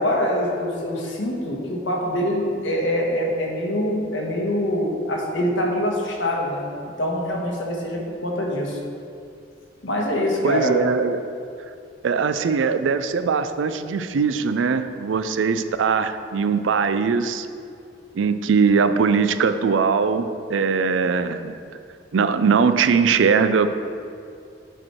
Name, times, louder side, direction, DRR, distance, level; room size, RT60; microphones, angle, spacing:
voice 1, 0.0-6.7 7.0-8.8 9.8-10.8, equal, 80° left, -1 dB, 1.3 m, -24 dB
voice 2, 10.4-11.2 12.0-17.5 18.1-21.6 22.1-23.7, right 5 dB, 85° right, 10 dB, 0.4 m, -21 dB
9.0 x 4.5 x 4.4 m, 2.4 s
head